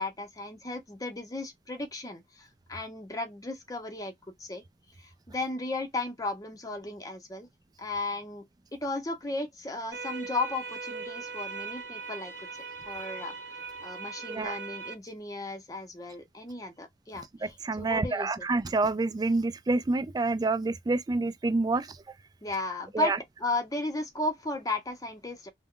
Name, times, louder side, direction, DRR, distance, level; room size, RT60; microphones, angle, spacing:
voice 1, 0.0-4.1 4.4-4.6 5.0-7.5 7.8-8.4 8.7-12.5 12.9-13.3 13.8-18.4 22.4-23.1 23.4-25.5, left 2 dB, 20° left, 0.6 m, -35 dB
sound 1, 9.9-14.9, right 5 dB, 70° right, 0.9 m, -39 dB
voice 2, 17.4-22.0 22.9-23.2, right 3 dB, 20° right, 0.3 m, -28 dB
2.2 x 2.1 x 3.6 m
head